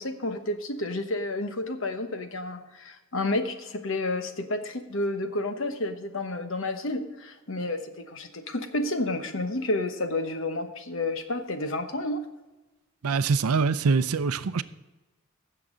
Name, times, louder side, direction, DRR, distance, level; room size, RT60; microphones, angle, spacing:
voice 1, 0.0-12.2, left 2 dB, 60° left, 1.1 m, -30 dB
voice 2, 13.0-14.6, right 5 dB, 90° right, 0.5 m, -24 dB
16.0 x 7.0 x 3.9 m
head